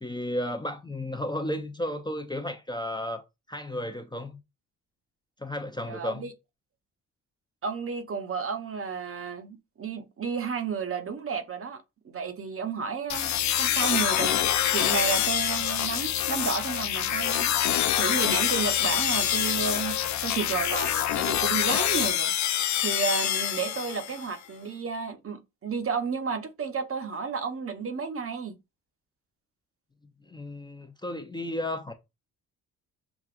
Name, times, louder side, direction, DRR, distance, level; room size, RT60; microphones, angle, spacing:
voice 1, 0.0-3.2 3.5-4.4 5.4-6.2 30.3-31.9, left 1 dB, 10° left, 0.6 m, -33 dB
voice 2, 5.9-6.3 7.6-14.4 14.7-28.5, right 5 dB, 35° right, 0.8 m, -32 dB
sound 1, 13.1-24.3, left 10 dB, 50° left, 0.5 m, -26 dB
6.0 x 2.4 x 2.5 m
supercardioid pair, 70°, 37 cm